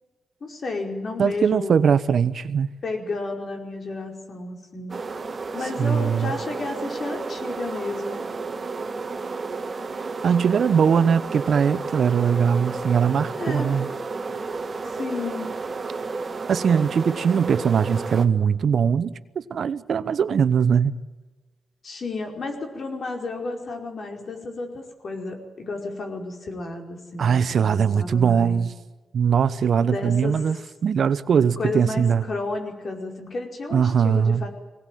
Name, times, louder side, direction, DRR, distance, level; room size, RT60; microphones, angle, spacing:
voice 1, 0.4-1.8 2.8-5.0 5.5-8.3 13.3-13.7 14.8-15.6 21.8-28.6 29.8-30.6 31.6-34.5, left 3 dB, 50° left, 4.9 m, -32 dB
voice 2, 1.2-2.7 5.8-6.3 10.2-13.9 16.5-21.0 27.2-28.7 29.1-30.6 30.8-32.2 33.7-34.4, right 7 dB, 65° right, 0.9 m, -21 dB
sound 1, 4.9-18.2, right 4 dB, 35° right, 1.9 m, -32 dB
23.0 x 18.5 x 9.3 m
cardioid pair, 95°, 0 cm